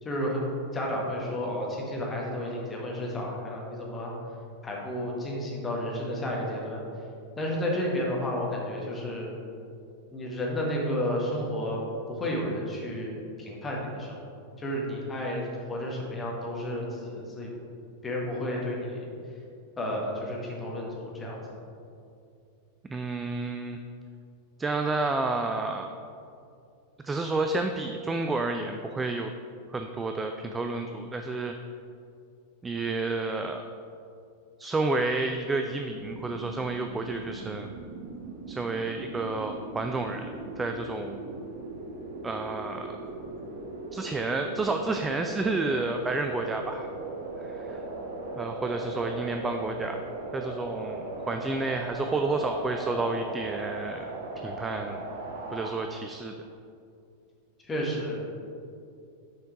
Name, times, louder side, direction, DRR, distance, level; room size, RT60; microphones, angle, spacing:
voice 1, 0.0-0.5 0.7-4.1 4.6-6.8 7.4-9.3 10.1-11.8 12.1-14.2 14.6-17.6 18.0-19.1 19.8-21.4 57.6-58.2, left 1 dB, 15° left, -3 dB, 1.4 m, -31 dB
voice 2, 22.9-23.8 24.6-25.9 27.0-29.3 29.7-31.5 32.6-33.6 34.6-37.8 38.5-40.3 40.6-41.2 42.2-43.0 43.9-46.9 47.4-47.8 48.4-50.0 50.3-54.1 54.4-55.0 55.5-56.3, right 3 dB, 15° right, 5 dB, 0.3 m, -30 dB
sound 1, 35.9-55.7, right 2 dB, 55° right, 0.8 m, -38 dB
6.4 x 4.4 x 4.7 m, 2.5 s
figure-of-eight pair, 90°, 0 cm